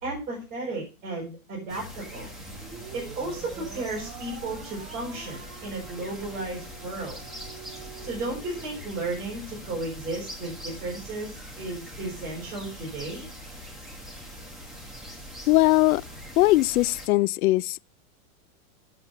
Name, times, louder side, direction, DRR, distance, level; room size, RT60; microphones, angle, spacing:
voice 1, 0.0-2.3 2.9-7.2 8.0-13.2, right 2 dB, 20° right, 4.5 m, -34 dB
sound 1, 1.7-17.1, equal, ahead, 1.2 m, -42 dB
sound 2, 2.4-8.9, right 8 dB, 35° right, 1.5 m, -45 dB
voice 2, 15.5-16.0 16.4-17.8, left 18 dB, 75° left, 0.5 m, -20 dB
8.3 x 7.6 x 6.6 m
supercardioid pair, 175°, 44 cm